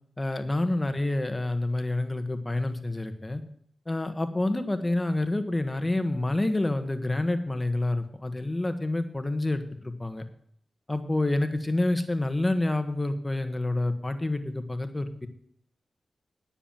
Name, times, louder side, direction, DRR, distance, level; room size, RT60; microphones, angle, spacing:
voice 1, 0.2-3.4 3.9-10.2 10.9-15.3, left 2 dB, 25° left, 9 dB, 1.4 m, -28 dB
10.0 x 7.2 x 7.3 m, 0.67 s
cardioid pair, 50°, 0 cm